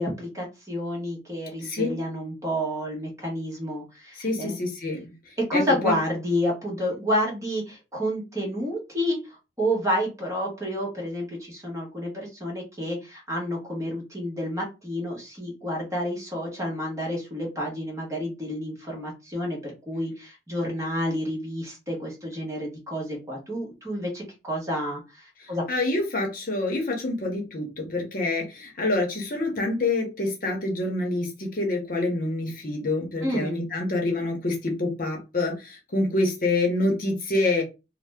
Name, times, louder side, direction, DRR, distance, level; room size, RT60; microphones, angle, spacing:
voice 1, 0.0-4.6 5.4-9.2 9.6-25.6 33.2-33.5, equal, 15° right, -2 dB, 1.0 m, -29 dB
voice 2, 1.6-1.9 4.1-5.1 5.5-5.9 25.4-37.6, left 2 dB, 50° left, 2 dB, 0.8 m, -27 dB
2.7 x 2.1 x 3.4 m, 0.27 s
head